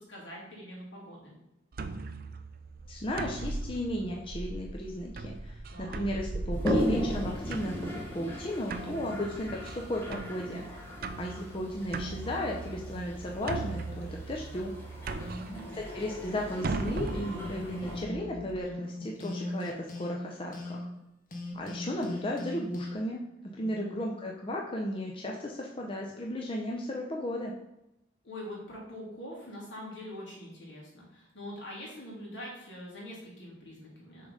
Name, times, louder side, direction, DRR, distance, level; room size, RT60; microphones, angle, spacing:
voice 1, 0.1-1.3 5.7-6.0 15.2-15.7 23.6-24.0 28.2-34.3, equal, 70° left, -4 dB, 2.6 m, -44 dB
sound 1, 1.7-18.6, right 3 dB, 50° right, 0.4 m, -39 dB
voice 2, 2.9-10.6 11.2-14.7 15.8-20.9 21.5-27.5, left 1 dB, 30° left, -1 dB, 0.5 m, -35 dB
Toilet flush, 6.5-18.0, equal, 10° left, 1.3 m, -38 dB
sound 2, 17.3-21.0 21.3-22.9, left 1 dB, 45° left, 1.0 m, -39 dB
6.6 x 3.7 x 5.3 m, 0.89 s
head